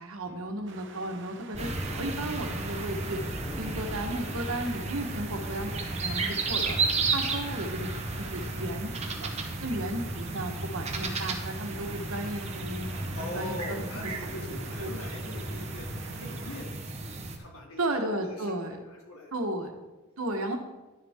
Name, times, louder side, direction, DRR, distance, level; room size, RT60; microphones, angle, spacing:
voice 1, 0.0-3.2 3.6-6.8 7.1-7.9 8.2-9.3 9.6-14.9 17.8-18.8 19.3-19.7 20.2-20.6, right 1 dB, 75° right, 5 dB, 1.2 m, -34 dB
sound 1, 0.7-16.7, right 4 dB, 55° right, 0.8 m, -49 dB
sound 2, 1.5-13.1, left 1 dB, 10° left, 0.6 m, -43 dB
sound 3, 1.6-17.4, right 3 dB, 30° right, 0.9 m, -34 dB
voice 2, 12.8-16.7 17.4-19.7, left 1 dB, 75° left, -1 dB, 2.5 m, -43 dB
11.0 x 7.1 x 3.6 m, 1.1 s
head